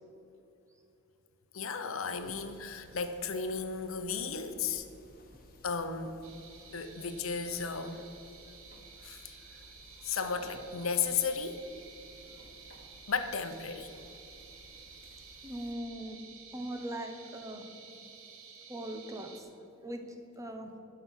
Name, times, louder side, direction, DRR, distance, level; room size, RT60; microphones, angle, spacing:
voice 1, 1.5-4.8 5.6-6.2 6.7-8.0 9.0-9.4 10.0-11.6 13.1-13.9, left 5 dB, 70° left, 8 dB, 0.8 m, -34 dB
sound 1, 2.1-15.7, left 2 dB, 45° left, 1.4 m, -58 dB
sound 2, 6.2-19.4, right 6 dB, 65° right, 1.2 m, -53 dB
voice 2, 15.4-16.2 16.5-17.7 18.7-19.5 19.8-20.7, right 1 dB, 15° right, 5 dB, 0.9 m, -40 dB
11.5 x 5.8 x 6.4 m, 2.8 s
head